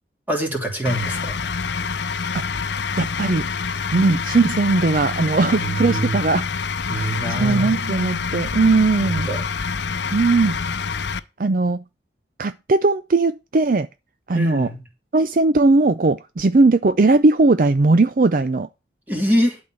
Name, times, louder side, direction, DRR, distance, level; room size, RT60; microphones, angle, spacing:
voice 1, 0.3-1.4 5.6-6.2 6.9-7.8 9.0-9.5 14.3-14.8 19.1-19.6, equal, 10° right, 2.9 m, -24 dB
sound 1, 0.8-11.2, left 5 dB, 75° left, 0.7 m, -26 dB
voice 2, 3.0-3.5 3.9-6.5 6.9-9.3 10.1-10.6 11.4-11.8 12.4-13.9 14.3-14.7 15.1-18.7, right 3 dB, 50° right, 0.5 m, -18 dB
12.0 x 4.2 x 7.7 m
head